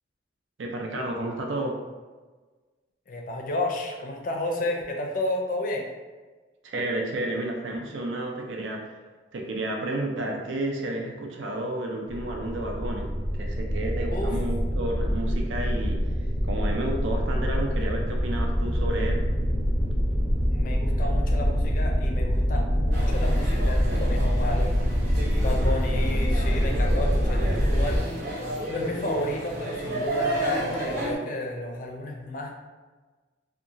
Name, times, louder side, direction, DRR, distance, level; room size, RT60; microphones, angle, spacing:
voice 1, 0.6-1.8 6.6-8.9 9.3-13.1 13.4-16.0 16.4-19.2, right 1 dB, 85° right, 1 dB, 0.5 m, -31 dB
voice 2, 3.1-5.9 14.1-14.3 20.5-24.7 25.4-28.1 28.7-32.5, left 1 dB, 45° left, 1 dB, 0.4 m, -31 dB
sound 1, 12.1-28.0, equal, 10° right, 0.5 m, -25 dB
sound 2, 22.9-31.1, right 1 dB, 55° right, 0.8 m, -32 dB
2.8 x 2.3 x 2.5 m, 1.3 s
head